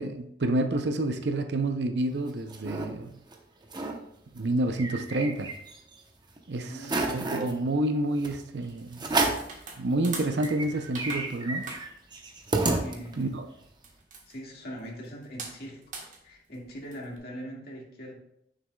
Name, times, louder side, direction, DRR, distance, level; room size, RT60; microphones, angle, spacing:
voice 1, 0.0-3.1 4.3-5.5 6.5-9.1 9.8-11.6 13.2-13.5, right 2 dB, 70° right, 7 dB, 0.6 m, -29 dB
sound 1, 2.0-2.9 3.3-3.4 3.6-4.0 4.4-6.0 6.4-6.5 6.8-7.5 8.2-8.4 9.0-9.5 10.0-10.1 10.3-13.3, right 2 dB, 25° right, 0.9 m, -31 dB
voice 2, 6.6-7.2 12.8-13.4 14.3-15.8 16.2-18.2, equal, 60° left, -3 dB, 2.0 m, -41 dB
sound 2, 8.6-17.2, right 4 dB, 45° right, 1.4 m, -44 dB
9.4 x 6.7 x 2.3 m, 0.74 s
head